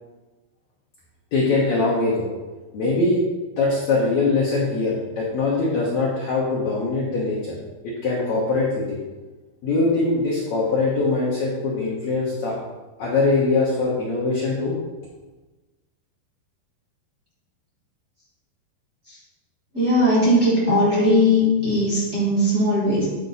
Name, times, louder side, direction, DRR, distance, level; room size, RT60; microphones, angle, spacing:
voice 1, 1.3-2.3 2.7-3.2 3.6-7.6 7.8-9.0 9.6-12.5 13.0-14.8, left 3 dB, 80° left, -4 dB, 1.6 m, -22 dB
voice 2, 19.7-23.1, left 1 dB, 25° right, -8 dB, 2.1 m, -19 dB
10.5 x 4.8 x 4.0 m, 1.2 s
omnidirectional pair, 5.0 m